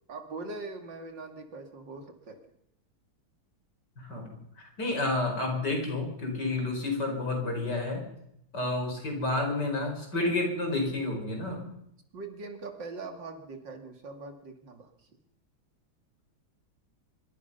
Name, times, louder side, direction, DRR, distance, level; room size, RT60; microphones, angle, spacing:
voice 1, 0.1-2.4 12.1-14.9, right 3 dB, 65° right, 5 dB, 3.0 m, -41 dB
voice 2, 4.0-4.4 4.8-8.1 8.5-11.6, left 2 dB, 55° left, 3 dB, 5.5 m, -30 dB
24.5 x 22.5 x 5.6 m, 0.79 s
omnidirectional pair, 2.2 m